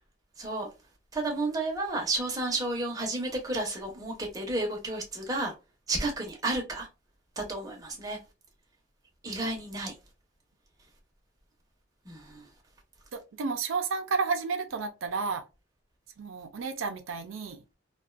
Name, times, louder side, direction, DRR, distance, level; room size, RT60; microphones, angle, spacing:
voice 1, 0.4-0.7 1.1-5.5 5.9-6.9 7.4-8.2 9.2-9.9 12.1-12.4, right 2 dB, 20° right, 0.7 m, -31 dB
voice 2, 13.1-15.4 16.2-17.6, right 4 dB, 90° right, 0.5 m, -32 dB
2.5 x 2.2 x 2.3 m
head